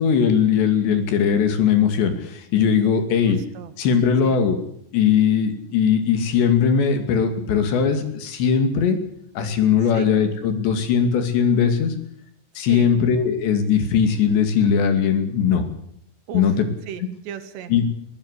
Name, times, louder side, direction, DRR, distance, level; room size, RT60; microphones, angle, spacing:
voice 1, 0.0-3.4 3.8-4.6 4.9-9.0 9.4-11.9 12.6-15.7 16.3-16.7 17.7-17.8, left 7 dB, 90° left, 8 dB, 4.7 m, -19 dB
voice 2, 3.3-3.7 4.2-4.4 9.9-10.1 12.7-12.9 16.3-16.5 16.9-17.7, right 8 dB, 85° right, 11 dB, 3.8 m, -35 dB
22.5 x 15.5 x 8.3 m, 0.67 s
omnidirectional pair, 4.9 m